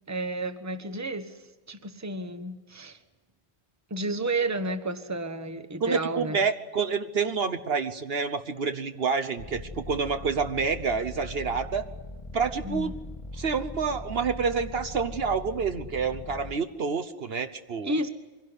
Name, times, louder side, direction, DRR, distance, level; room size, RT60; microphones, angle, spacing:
voice 1, 0.1-1.4 1.7-3.0 3.9-6.4 12.6-12.9 17.8-18.1, right 2 dB, 15° right, 9 dB, 1.1 m, -31 dB
voice 2, 5.8-11.9 12.3-13.0 13.3-17.9, right 5 dB, 65° right, 9 dB, 1.2 m, -28 dB
sound 1, 9.4-16.5, left 2 dB, 30° left, 1.9 m, -41 dB
24.0 x 17.0 x 9.7 m, 1.2 s
omnidirectional pair, 1.1 m